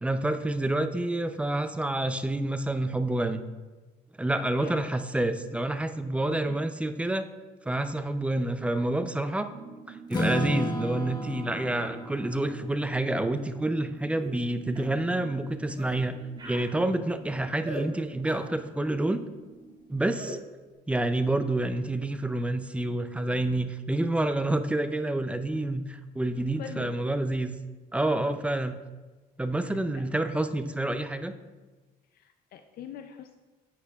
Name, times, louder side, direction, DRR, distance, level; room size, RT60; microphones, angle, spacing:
voice 1, 0.0-3.4 4.2-7.3 7.6-9.5 9.9-16.2 16.4-19.2 19.9-20.4 20.9-27.6 27.9-28.8 29.4-31.4, right 1 dB, 5° right, 9 dB, 0.5 m, -28 dB
voice 2, 4.6-4.9 6.5-6.7 26.6-27.0 29.6-29.8 32.1-33.4, left 8 dB, 65° left, 7 dB, 0.5 m, -43 dB
sound 1, 9.5-20.4, right 4 dB, 50° right, 0.7 m, -48 dB
Strum, 10.1-14.0, equal, 25° left, 1.3 m, -34 dB
sound 2, 14.2-14.4 14.7-15.0 15.7-16.0 16.4-16.7 17.6-17.9 18.2-18.5 20.2-20.4, equal, 30° right, 2.1 m, -39 dB
10.0 x 8.2 x 2.4 m, 1.3 s
cardioid pair, 110°, 17 cm